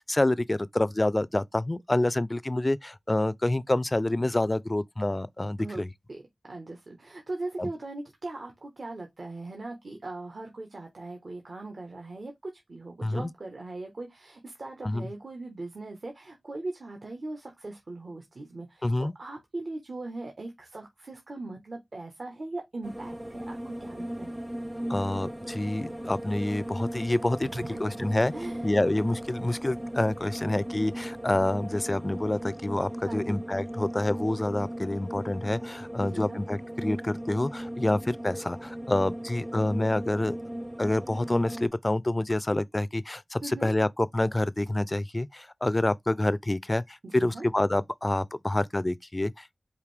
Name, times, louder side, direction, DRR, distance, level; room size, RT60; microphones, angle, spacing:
voice 1, 0.1-5.9 7.6-7.7 13.0-13.3 14.8-15.1 18.8-19.1 24.9-28.3 28.6-40.4 40.8-49.5, left 1 dB, 30° left, 0.3 m, -27 dB
voice 2, 6.1-24.3 27.4-28.0 28.3-28.7 33.1-33.4 36.0-36.4 43.4-43.7 47.0-47.4, right 2 dB, 70° right, 1.1 m, -40 dB
sound 1, 22.8-41.7, right 1 dB, 20° right, 0.5 m, -37 dB
4.9 x 2.6 x 3.3 m
cardioid pair, 40°, 0 cm